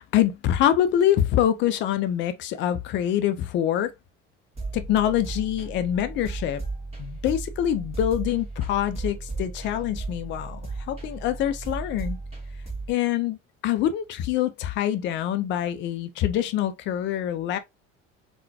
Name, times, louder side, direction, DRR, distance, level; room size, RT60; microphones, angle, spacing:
voice 1, 0.0-3.9 4.7-6.6 7.0-10.6 10.9-12.2 12.9-13.4 13.6-17.6, left 11 dB, 30° left, 0.4 m, -25 dB
sound 1, 4.6-12.9, right 3 dB, 15° right, 1.4 m, -35 dB
3.7 x 2.2 x 2.6 m
figure-of-eight pair, 60°, 37 cm